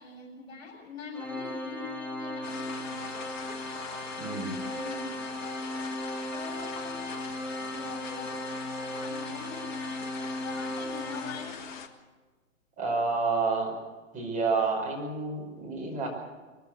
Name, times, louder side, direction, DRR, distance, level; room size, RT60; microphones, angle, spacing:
voice 1, 0.0-3.0 4.7-5.1 6.3-7.0 7.7-8.5 9.0-10.1 10.4-11.6, left 5 dB, 50° left, 0 dB, 6.6 m, -43 dB
Organ, 1.1-11.9, left 1 dB, 5° left, 1.4 m, -37 dB
sound 1, 2.4-11.9, left 6 dB, 30° left, 1.6 m, -43 dB
voice 2, 4.2-4.6 12.8-13.8 14.1-16.1, right 4 dB, 20° right, -1 dB, 5.5 m, -29 dB
23.5 x 15.5 x 7.7 m, 1.3 s
figure-of-eight pair, 120°, 41 cm